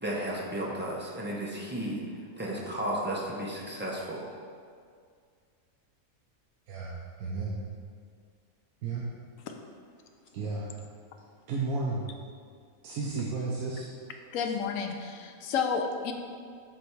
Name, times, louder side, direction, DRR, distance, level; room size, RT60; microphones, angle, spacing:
voice 1, 0.0-2.0 2.4-4.2, right 1 dB, 10° right, -4 dB, 0.5 m, -33 dB
voice 2, 7.2-7.6 8.8-9.0 10.3-10.7 11.5-12.0 12.8-13.9, right 3 dB, 70° right, -4 dB, 1.2 m, -32 dB
voice 3, 14.3-16.1, left 6 dB, 65° left, 4 dB, 0.9 m, -31 dB
8.0 x 3.4 x 4.6 m, 2.1 s
omnidirectional pair, 1.6 m